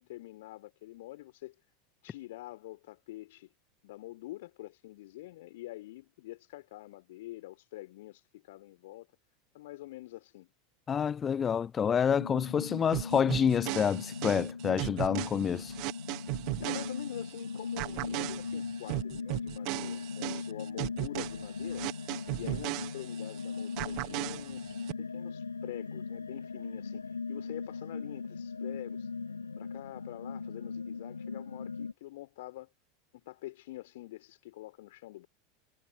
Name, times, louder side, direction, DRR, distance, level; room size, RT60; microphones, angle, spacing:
voice 1, 0.0-1.6 2.0-3.5 3.8-9.1 9.5-10.5 16.6-21.9 22.4-29.1 29.6-32.7 33.1-35.3, left 17 dB, 60° left, 3.6 m, -46 dB
voice 2, 10.9-15.7, left 7 dB, 25° left, 0.4 m, -28 dB
sound 1, 12.1-31.9, left 5 dB, 80° left, 2.1 m, -39 dB
sound 2, 12.9-17.4 17.8-23.4 23.8-24.9, right 26 dB, 45° right, 1.5 m, -37 dB
figure-of-eight pair, 80°, 0 cm